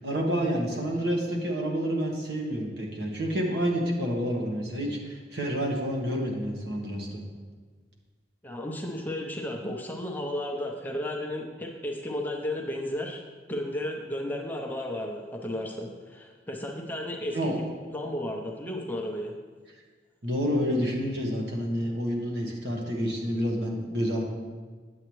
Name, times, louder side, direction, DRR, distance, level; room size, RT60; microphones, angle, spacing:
voice 1, 0.0-7.2 17.3-17.6 20.2-24.2, equal, 70° right, -1 dB, 1.3 m, -29 dB
voice 2, 8.4-13.2 13.5-17.5 17.9-19.3, left 1 dB, 10° left, 0 dB, 0.6 m, -33 dB
8.6 x 7.8 x 3.1 m, 1.5 s
head